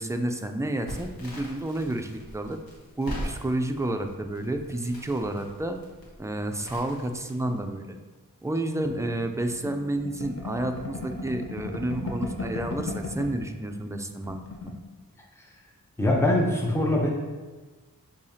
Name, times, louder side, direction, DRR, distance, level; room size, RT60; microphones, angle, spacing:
voice 1, 0.0-2.6 3.0-5.8 6.2-8.0 8.4-14.4 14.6-14.7, right 1 dB, 10° right, 5 dB, 0.3 m, -30 dB
Crackle, 0.9-7.7, equal, 80° left, 1.2 m, -41 dB
sound 1, 8.9-13.5 13.8-13.9 14.2-14.8, left 3 dB, 40° left, 0.8 m, -36 dB
voice 2, 16.0-17.1, left 1 dB, 5° left, -1 dB, 0.7 m, -23 dB
6.6 x 2.8 x 2.7 m, 1.3 s
wide cardioid pair, 55°, 35 cm